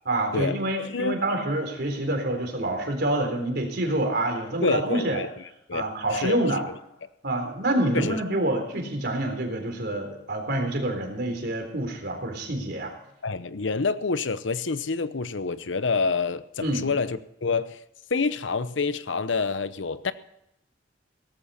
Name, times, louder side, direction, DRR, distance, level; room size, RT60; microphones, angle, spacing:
voice 1, 0.1-5.2 5.7-6.6 7.2-13.0 16.6-16.9, right 1 dB, 60° right, 4 dB, 3.7 m, -27 dB
voice 2, 0.9-1.2 4.6-5.3 5.7-5.8 6.1-6.4 7.9-8.2 13.2-17.8 18.1-20.1, left 4 dB, 75° left, 14 dB, 0.8 m, -27 dB
17.5 x 14.5 x 4.2 m, 0.81 s
head